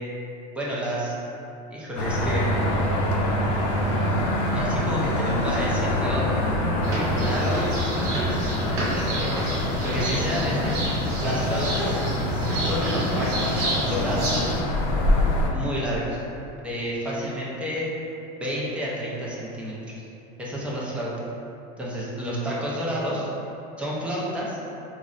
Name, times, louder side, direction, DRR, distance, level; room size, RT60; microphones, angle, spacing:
voice 1, 0.5-1.2 1.7-2.5 4.5-6.5 6.9-9.3 9.8-10.7 11.2-12.0 12.6-13.6 13.9-14.5 15.5-16.2 16.6-17.9 18.4-20.0 20.4-21.1 21.8-23.3 23.8-24.6, equal, 5° right, -6 dB, 0.3 m, -30 dB
sound 1, 2.0-15.5, left 1 dB, 80° left, 0.5 m, -25 dB
sound 2, 6.8-14.6, right 1 dB, 65° right, 0.8 m, -29 dB
3.6 x 2.1 x 2.4 m, 2.8 s
supercardioid pair, 155°, 21 cm